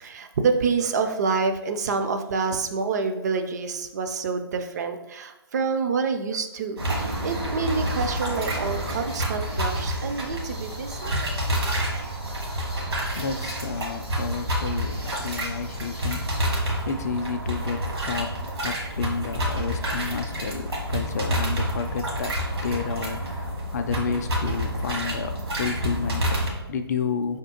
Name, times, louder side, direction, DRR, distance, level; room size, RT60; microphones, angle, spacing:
voice 1, 0.0-11.2 11.8-11.9, right 5 dB, 40° right, 7 dB, 0.4 m, -27 dB
sound 1, 6.8-26.5, equal, 75° right, 1.4 m, -28 dB
voice 2, 12.4-27.4, left 5 dB, 40° left, 7 dB, 0.3 m, -31 dB
4.9 x 3.5 x 2.8 m, 0.97 s
figure-of-eight pair, 130°, 13 cm